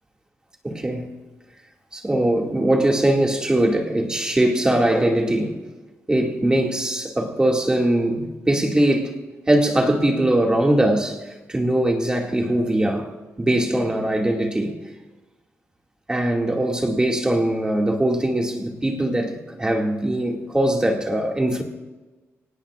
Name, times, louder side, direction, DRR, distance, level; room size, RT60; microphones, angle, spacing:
voice 1, 0.6-1.1 1.9-5.6 6.1-9.1 9.5-13.1 13.4-14.8 16.1-21.6, right 1 dB, 15° right, 2.1 m, -21 dB
25.0 x 18.5 x 2.5 m
wide cardioid pair, 125°, 5 cm